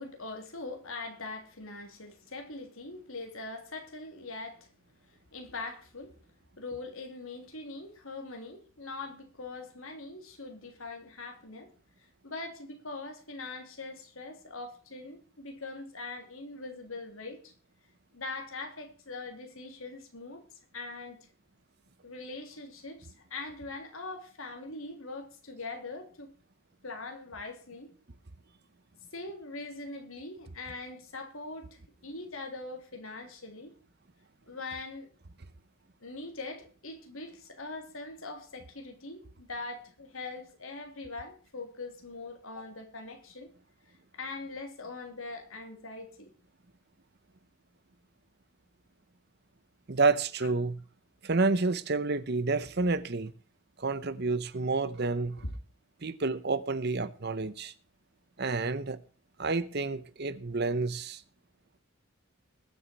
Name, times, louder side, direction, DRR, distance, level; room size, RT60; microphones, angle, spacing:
voice 1, 0.0-4.6 5.3-6.1 6.6-11.7 12.2-17.5 18.1-20.4 20.7-21.2 22.0-26.3 26.8-27.9 29.1-31.7 32.0-33.7 34.5-35.1 36.0-43.5 44.1-46.3 55.4-55.5, left 3 dB, 70° left, 3.3 m, -42 dB
voice 2, 49.9-50.8 51.2-53.3 53.8-55.4 56.0-57.7 58.4-59.0 59.4-61.2, right 3 dB, 50° right, 0.8 m, -29 dB
21.0 x 7.2 x 4.6 m
head